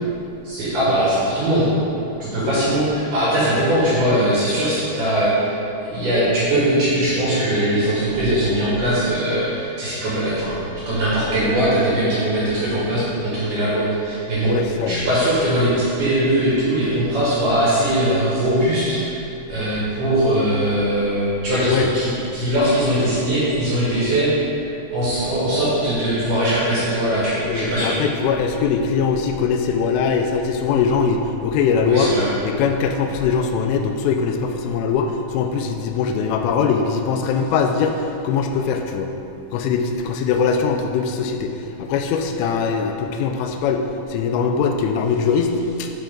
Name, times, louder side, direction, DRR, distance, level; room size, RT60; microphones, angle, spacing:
voice 1, 0.4-1.7 2.2-5.5 5.8-14.5 14.8-24.3 24.9-28.0 31.9-32.2, right 1 dB, 55° right, -9 dB, 2.6 m, -20 dB
voice 2, 14.5-15.1 21.7-21.9 27.5-32.1 32.4-39.1 39.5-43.8 44.1-45.9, left 6 dB, 90° left, 4 dB, 3.1 m, -21 dB
11.5 x 4.6 x 3.8 m, 2.8 s
omnidirectional pair, 5.6 m